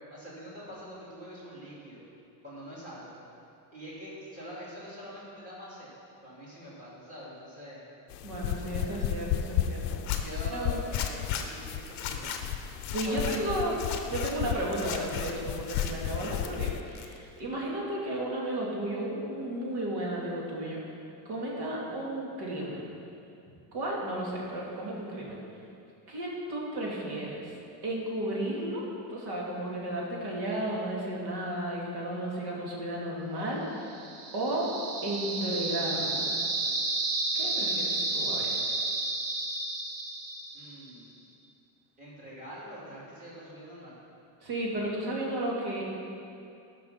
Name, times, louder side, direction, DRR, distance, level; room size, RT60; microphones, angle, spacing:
voice 1, 0.1-2.0 2.4-3.1 3.7-5.9 6.2-7.9 8.6-8.9 10.2-12.3 13.0-13.5 40.5-41.2 42.0-44.0, equal, 15° right, -7 dB, 3.0 m, -44 dB
sound 1, 8.1-16.8, left 10 dB, 85° left, 0.7 m, -33 dB
voice 2, 8.2-10.8 12.8-13.8 14.1-20.8 21.3-22.8 23.7-25.4 26.1-27.4 27.8-28.8 29.1-33.9 34.3-34.7 35.0-36.2 37.3-38.6 44.4-45.8, right 1 dB, 55° right, -4 dB, 2.7 m, -33 dB
Zipper (clothing), 9.9-10.2 10.9-11.4 11.9-12.4 12.8-13.4 13.7-14.3 14.7-15.3 15.6-16.5 16.8-17.4, left 8 dB, 40° left, 0.9 m, -38 dB
sound 2, 33.9-40.8, right 2 dB, 80° right, 1.7 m, -31 dB
14.0 x 6.2 x 5.7 m, 2.6 s
cardioid pair, 175°, 47 cm